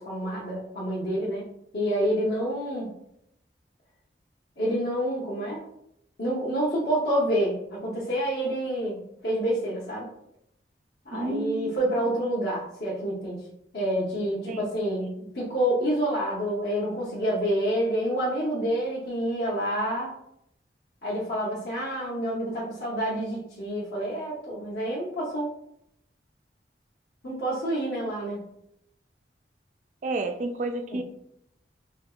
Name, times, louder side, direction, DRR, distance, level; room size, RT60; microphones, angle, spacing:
voice 1, 0.0-1.4 1.7-2.9 4.6-5.6 6.2-10.1 11.0-13.5 13.7-20.1 21.0-25.5 27.2-28.4, equal, 70° left, -8 dB, 0.8 m, -28 dB
voice 2, 11.1-12.0 14.5-14.7 30.0-31.0, right 2 dB, 45° right, 6 dB, 0.3 m, -31 dB
3.4 x 2.7 x 2.4 m, 0.77 s
head